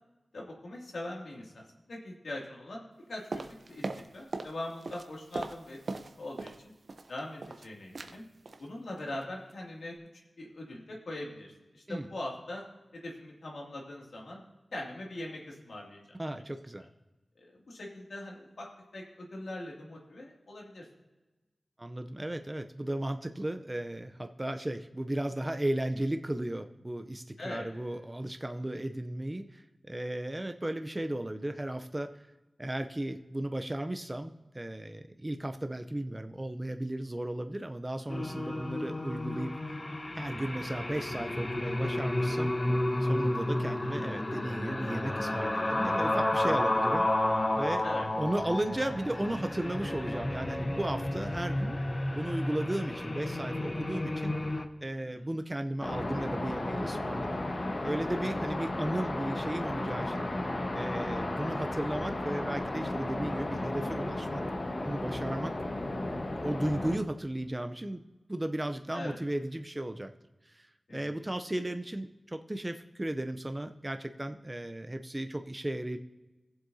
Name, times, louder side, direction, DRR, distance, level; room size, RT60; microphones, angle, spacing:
voice 1, 0.3-1.6 1.9-3.9 4.1-6.7 7.1-8.2 8.6-9.9 10.4-12.6 12.9-14.4 14.7-16.0 17.4-18.7 18.9-20.9 27.4-27.7 47.8-48.1 54.9-55.3 68.9-69.2 70.9-71.1, left 1 dB, 80° left, -2 dB, 2.4 m, -41 dB
sound 1, 3.3-4.6 4.8-6.6 6.9-7.7 7.9-8.2 8.5-8.7 9.0-9.2 9.5-9.6, right 3 dB, 65° right, 0.7 m, -39 dB
voice 2, 16.2-16.9 21.8-32.2 32.6-39.6 40.1-42.5 43.0-47.1 47.5-47.9 48.2-51.8 52.1-54.4 54.8-57.4 57.8-60.3 60.7-64.4 64.8-65.5 66.4-68.0 68.3-70.1 70.5-76.0, right 1 dB, 20° right, 7 dB, 0.5 m, -35 dB
sound 2, 38.1-54.7, left 1 dB, 30° left, 0.9 m, -31 dB
sound 3, 55.8-67.0, left 1 dB, 50° left, 1.3 m, -34 dB
19.5 x 7.6 x 2.7 m, 1.1 s
wide cardioid pair, 70°, 0 cm